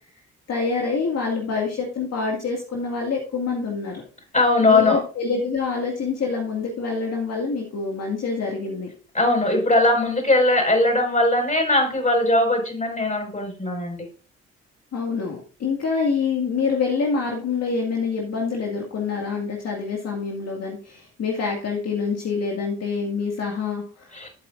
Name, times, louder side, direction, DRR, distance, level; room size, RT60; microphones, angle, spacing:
voice 1, 0.5-4.0 4.6-8.9 14.9-24.2, left 4 dB, 55° left, 0 dB, 2.0 m, -26 dB
voice 2, 4.3-5.0 9.1-14.1 24.1-24.3, left 2 dB, 25° left, 3 dB, 5.4 m, -20 dB
13.0 x 8.0 x 2.5 m, 0.38 s
hypercardioid pair, 55°, 30 cm